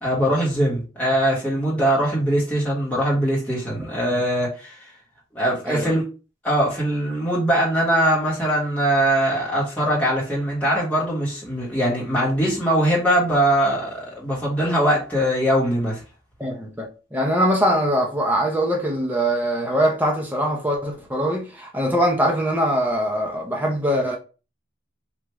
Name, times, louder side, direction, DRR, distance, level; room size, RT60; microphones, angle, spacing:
voice 1, 0.0-4.7 5.3-6.1 6.4-16.0, right 1 dB, 10° left, 1.2 m, -21 dB
voice 2, 5.7-6.0 16.4-24.2, equal, 10° right, 0.6 m, -22 dB
3.3 x 2.5 x 3.0 m
head